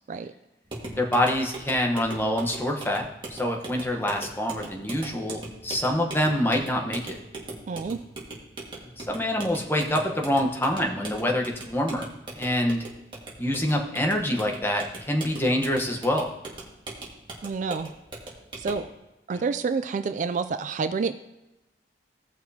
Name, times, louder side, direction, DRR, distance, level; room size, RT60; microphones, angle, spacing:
sound 1, 0.7-18.9, right 2 dB, 25° right, 1.7 m, -40 dB
voice 1, 1.0-7.2 8.8-12.1 12.3-12.8 13.4-16.3 19.3-19.4, left 1 dB, 10° left, 1 dB, 1.0 m, -26 dB
voice 2, 7.7-8.0 17.4-17.9 18.6-18.9 19.3-21.1, right 5 dB, 45° right, 10 dB, 0.3 m, -28 dB
16.5 x 6.1 x 2.8 m, 0.97 s
head